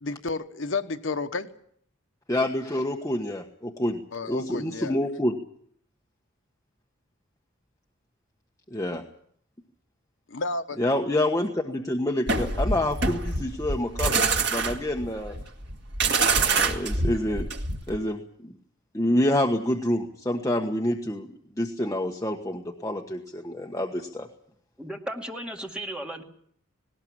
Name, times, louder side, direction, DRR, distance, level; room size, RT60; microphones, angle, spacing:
voice 1, 0.0-1.5 4.1-5.0 10.3-10.8, left 3 dB, 65° left, 9 dB, 1.1 m, -31 dB
voice 2, 2.3-4.0 4.3-5.4 8.7-9.0 10.8-15.3 16.4-17.5 17.9-18.5 18.9-21.3 21.6-24.3, left 1 dB, 15° left, 2 dB, 1.3 m, -27 dB
sound 1, 12.3-18.0, right 4 dB, 55° right, 2.0 m, -25 dB
voice 3, 24.8-26.2, right 1 dB, 5° right, 1 dB, 2.2 m, -35 dB
19.0 x 18.5 x 8.8 m, 0.65 s
head